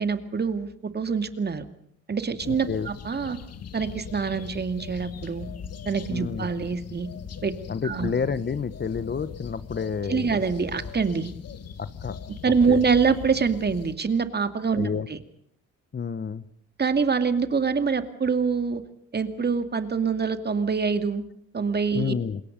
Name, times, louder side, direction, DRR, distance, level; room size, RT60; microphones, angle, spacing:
voice 1, 0.0-1.7 2.1-3.4 3.7-5.5 5.9-7.1 7.4-7.5 7.8-8.1 10.1-11.3 12.4-15.2 16.8-18.8 19.1-21.2 21.5-22.1, right 5 dB, 35° right, 10 dB, 2.4 m, -25 dB
sound 1, 2.4-13.9, left 7 dB, 55° left, 1.9 m, -40 dB
voice 2, 2.5-2.9 6.1-6.5 7.7-10.3 11.8-12.2 12.7-12.8 14.8-15.1 15.9-16.4 21.9-22.4, left 6 dB, 35° left, 15 dB, 1.2 m, -29 dB
28.0 x 21.5 x 5.3 m, 0.66 s
cardioid pair, 90°, 30 cm